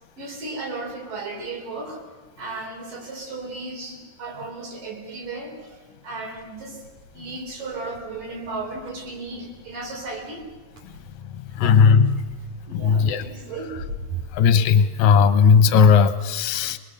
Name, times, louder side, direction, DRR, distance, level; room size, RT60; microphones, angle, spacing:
voice 1, 0.2-2.0 2.4-6.8 7.1-10.5 11.6-11.8 12.7-13.8, right 3 dB, 75° right, 0 dB, 5.4 m, -35 dB
sound 1, 6.3-15.3, right 2 dB, 55° right, 3.3 m, -42 dB
voice 2, 11.3-12.2 12.7-13.2 14.3-16.8, left 6 dB, 70° left, 12 dB, 2.0 m, -16 dB
24.5 x 20.5 x 6.7 m, 1.2 s
omnidirectional pair, 3.9 m